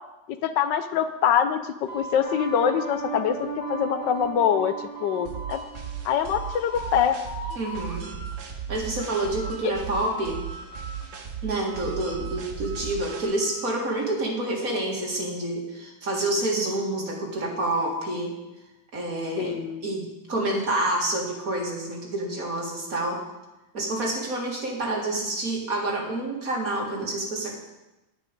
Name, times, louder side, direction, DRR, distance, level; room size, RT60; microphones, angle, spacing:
voice 1, 0.4-4.7 5.0-5.6 6.0-7.2 9.6-9.7 19.4-19.8, left 8 dB, 75° left, 10 dB, 1.3 m, -24 dB
sound 1, 1.9-4.3 4.6-5.7 6.0-7.0 7.3-8.3 8.7-9.7 9.9-11.2 11.7-13.8, right 1 dB, 10° left, 1.3 m, -41 dB
sound 2, 2.2-6.4 6.8-6.9, right 3 dB, 50° left, 2.3 m, -36 dB
sound 3, 5.3-13.3, right 8 dB, 75° right, 1.9 m, -37 dB
voice 2, 7.6-8.1 8.7-10.4 11.4-18.3 18.9-23.2 23.7-27.6, right 1 dB, 50° right, -1 dB, 2.6 m, -28 dB
10.0 x 9.5 x 5.2 m, 0.99 s
omnidirectional pair, 2.0 m